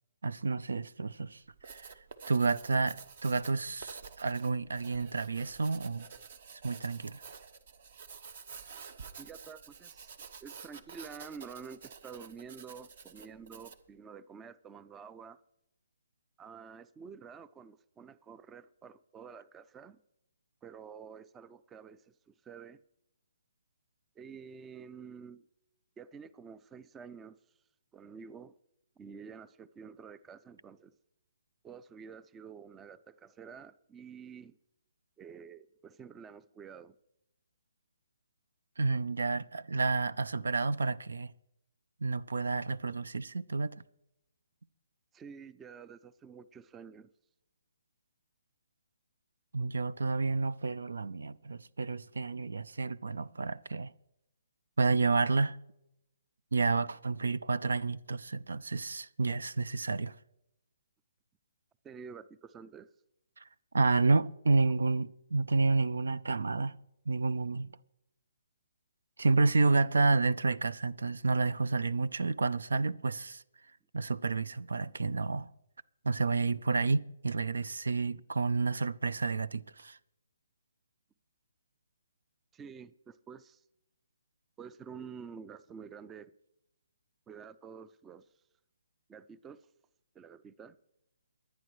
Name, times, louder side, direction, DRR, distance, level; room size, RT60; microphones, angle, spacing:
voice 1, 0.2-1.9 2.3-6.1 6.6-7.2 38.8-41.3 42.0-43.8 49.5-53.9 54.8-55.6 56.5-60.2 63.4-63.5 63.7-66.8 67.1-67.8 69.2-73.4 73.9-75.5 76.0-80.0, right 3 dB, 85° right, 0.4 m, -30 dB
Writing, 1.5-13.9, right 6 dB, 55° right, 0.9 m, -50 dB
voice 2, 9.2-10.1 10.4-15.4 16.4-20.0 20.6-22.8 24.2-25.5 26.0-27.4 27.9-28.5 29.0-30.9 31.6-34.6 35.2-36.9 45.1-47.1 61.8-62.9 82.5-83.6 84.6-86.3 87.3-88.3 89.1-89.7 90.1-90.8, right 6 dB, 15° right, 0.4 m, -49 dB
23.5 x 9.2 x 3.1 m
hypercardioid pair, 145°, 0 cm